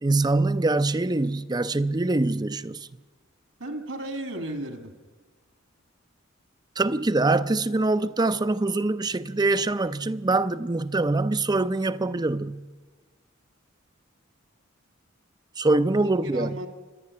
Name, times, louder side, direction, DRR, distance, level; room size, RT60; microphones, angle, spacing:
voice 1, 0.0-2.9 6.8-12.6 15.6-16.5, right 2 dB, 20° right, 0.5 m, -24 dB
voice 2, 3.6-4.9 15.9-16.7, right 1 dB, 70° right, 2.2 m, -34 dB
27.0 x 11.0 x 9.6 m
head